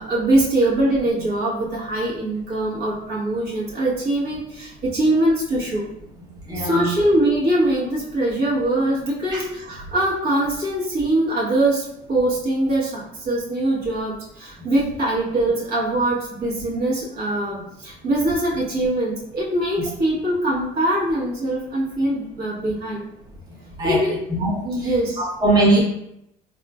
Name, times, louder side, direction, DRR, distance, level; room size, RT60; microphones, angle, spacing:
voice 1, 0.0-5.9 6.5-23.1 23.8-24.2 24.6-25.3, right 1 dB, 60° right, -5 dB, 1.2 m, -22 dB
voice 2, 6.5-6.9 9.3-9.4 23.8-24.0 24.3-25.8, right 2 dB, 20° right, -4 dB, 0.9 m, -21 dB
3.6 x 2.4 x 2.4 m, 0.79 s
supercardioid pair, 75°, 18 cm